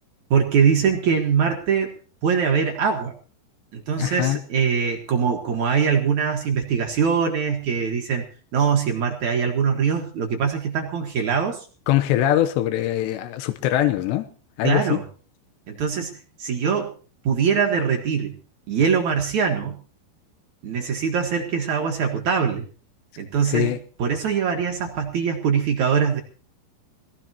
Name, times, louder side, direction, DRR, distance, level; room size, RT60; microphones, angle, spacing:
voice 1, 0.3-1.9 2.2-3.1 3.7-8.2 8.5-11.7 14.6-15.0 15.7-16.1 16.4-16.9 17.2-18.3 18.7-19.8 20.6-22.6 23.2-23.7 24.0-26.2, right 6 dB, 65° right, 1.9 m, -22 dB
voice 2, 4.0-4.4 11.9-14.3 14.6-15.0 23.4-23.8, left 12 dB, 75° left, 2.7 m, -22 dB
21.5 x 16.0 x 2.9 m
omnidirectional pair, 5.7 m